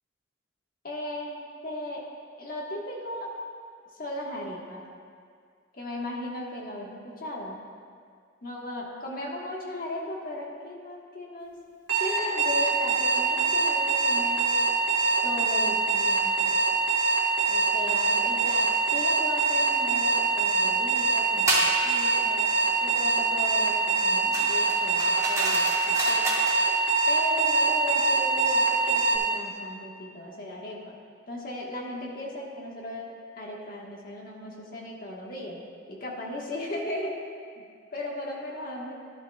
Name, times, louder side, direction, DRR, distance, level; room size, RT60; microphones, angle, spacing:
voice 1, 0.8-2.0 2.4-3.3 4.0-4.9 5.7-7.6 8.4-11.5 12.0-14.6 15.2-16.6 17.5-22.4 22.8-26.3 27.1-30.9 31.3-35.6 35.9-37.2 37.6-37.7 37.9-38.9, left 1 dB, 50° left, -2 dB, 1.4 m, -36 dB
Alarm, 11.9-29.2, right 4 dB, 90° right, 1.6 m, -24 dB
sound 1, 21.5-21.8 24.3-26.6, right 2 dB, 15° right, 1.2 m, -30 dB
12.5 x 9.9 x 2.3 m, 2.1 s
head